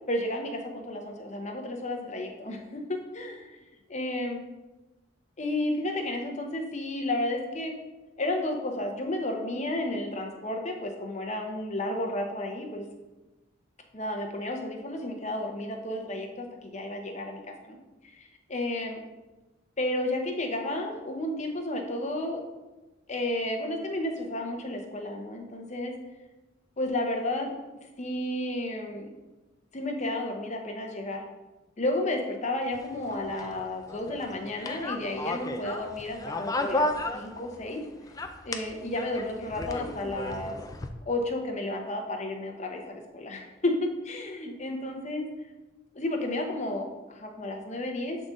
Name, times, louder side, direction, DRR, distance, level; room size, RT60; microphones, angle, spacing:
voice 1, 0.1-3.6 3.9-4.4 5.4-7.8 8.2-12.9 13.9-17.8 18.1-19.0 19.8-22.4 23.1-25.9 26.8-27.6 28.0-29.1 29.7-31.2 31.8-36.9 37.1-37.8 38.4-40.6 41.1-45.3 45.9-48.2, left 1 dB, 35° left, 2 dB, 0.8 m, -32 dB
sound 1, 32.7-37.8 38.1-40.9, left 2 dB, 20° left, 0.3 m, -34 dB
7.7 x 3.8 x 3.8 m, 1.1 s
head